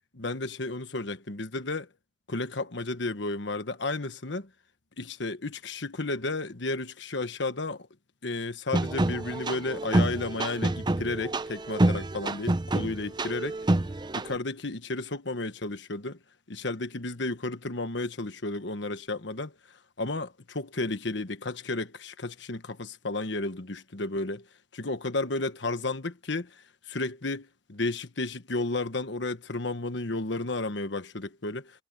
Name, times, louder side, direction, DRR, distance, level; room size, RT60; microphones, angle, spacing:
voice 1, 0.2-1.9 2.3-4.5 5.0-7.9 8.2-13.6 14.1-16.2 16.5-19.5 20.0-24.5 24.7-31.8, left 2 dB, 65° left, 1.3 m, -32 dB
sound 1, 8.7-14.4, right 1 dB, 25° right, 0.6 m, -27 dB
head